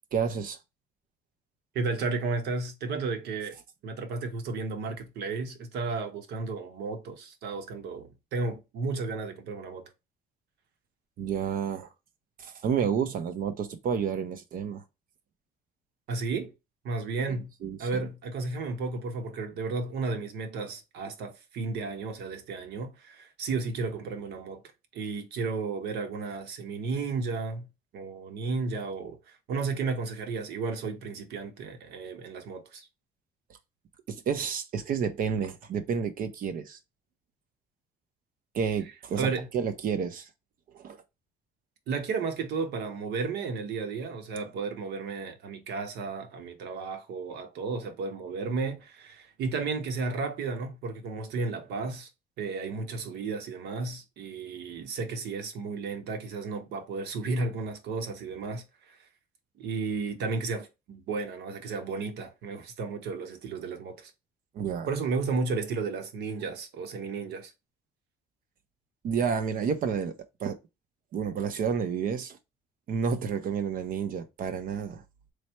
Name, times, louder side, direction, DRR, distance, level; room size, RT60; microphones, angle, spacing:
voice 1, 0.1-0.6 11.2-11.9 12.4-14.8 17.6-18.0 34.1-36.8 38.5-40.3 40.7-41.0 64.5-64.9 69.0-70.6 71.1-72.4 72.9-75.0, right 6 dB, 55° right, 0.7 m, -30 dB
voice 2, 1.7-3.6 3.8-9.9 16.1-16.5 16.8-17.5 17.8-24.6 24.9-27.7 27.9-29.2 29.5-32.9 39.2-39.5 41.9-52.1 52.4-59.0 59.6-64.1 64.9-67.5, right 4 dB, 75° right, 1.0 m, -33 dB
3.2 x 2.5 x 4.3 m
cardioid pair, 110°, 17 cm